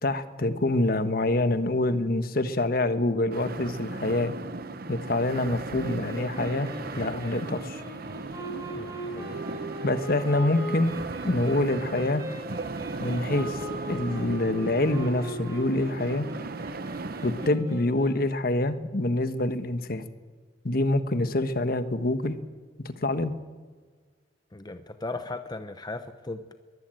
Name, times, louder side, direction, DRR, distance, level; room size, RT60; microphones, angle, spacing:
voice 1, 0.0-4.3 4.9-6.7 6.9-7.8 9.8-10.9 11.2-12.2 13.0-13.6 13.9-16.3 17.2-20.0 20.6-22.4 22.8-23.3, left 2 dB, 50° left, 10 dB, 1.4 m, -26 dB
sound 1, 3.3-17.5, right 3 dB, 55° right, 0.9 m, -37 dB
sound 2, 5.8-18.4, right 1 dB, 20° right, 5.1 m, -40 dB
voice 2, 8.7-9.6 24.5-26.5, left 2 dB, 20° left, 9 dB, 0.8 m, -37 dB
22.5 x 14.0 x 9.0 m, 1.5 s
head